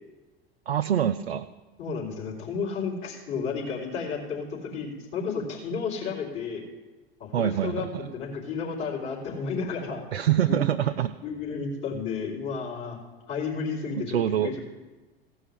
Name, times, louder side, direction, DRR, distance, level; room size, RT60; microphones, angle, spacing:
voice 1, 0.7-1.5 7.3-8.1 10.1-11.2 13.9-14.5, right 10 dB, 85° right, 8 dB, 0.5 m, -25 dB
voice 2, 1.8-6.6 7.2-10.6 11.2-13.0 13.3-14.6, left 5 dB, 40° left, -7 dB, 4.0 m, -32 dB
15.5 x 5.5 x 8.4 m, 1.2 s
figure-of-eight pair, 85°, 31 cm